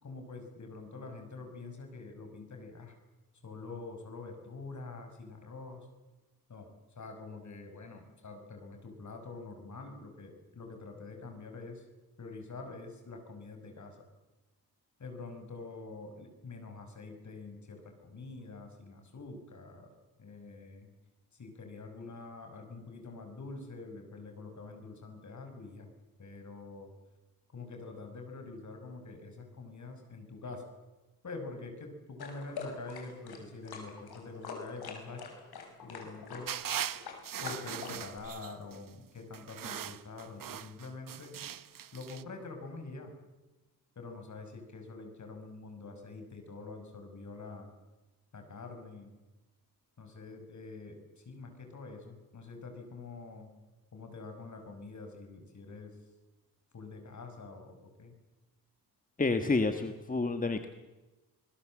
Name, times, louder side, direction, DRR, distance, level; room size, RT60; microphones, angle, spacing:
voice 1, 0.0-2.9 3.4-5.9 6.5-11.8 12.2-14.0 15.0-19.9 20.2-20.9 21.3-25.9 26.2-26.9 27.5-30.6 31.2-35.2 35.8-36.5 37.4-41.4 41.9-43.1 44.0-47.7 48.3-49.1 50.0-53.6 53.9-56.0 56.7-58.1, left 3 dB, 45° left, 5 dB, 6.0 m, -46 dB
sound 1, 32.2-38.2, left 5 dB, 70° left, 5.9 m, -44 dB
sound 2, 36.5-38.8 39.3-42.2, right 9 dB, 55° right, 1.1 m, -40 dB
voice 2, 59.2-60.7, left 3 dB, 20° left, 8 dB, 1.6 m, -29 dB
26.5 x 21.0 x 7.6 m, 1.1 s
cardioid pair, 95°, 39 cm